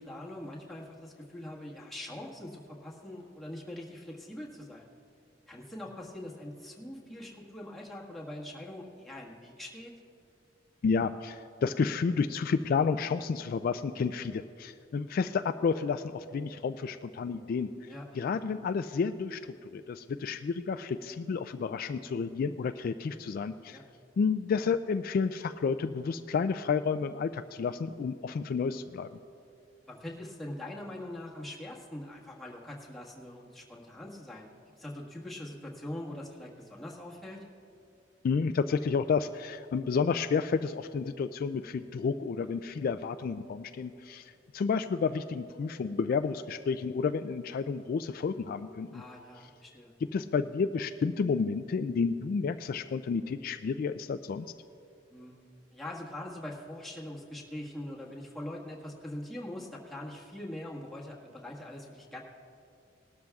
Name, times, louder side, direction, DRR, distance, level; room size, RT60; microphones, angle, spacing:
voice 1, 0.0-4.9 5.5-9.9 17.9-18.3 23.7-23.8 29.9-37.4 48.9-49.9 55.1-55.4 55.7-62.2, left 1 dB, ahead, -5 dB, 1.5 m, -43 dB
voice 2, 10.8-17.9 18.1-23.8 24.2-29.1 38.2-49.0 50.1-54.5, left 5 dB, 55° left, 10 dB, 0.3 m, -31 dB
19.5 x 12.5 x 2.4 m, 2.5 s
head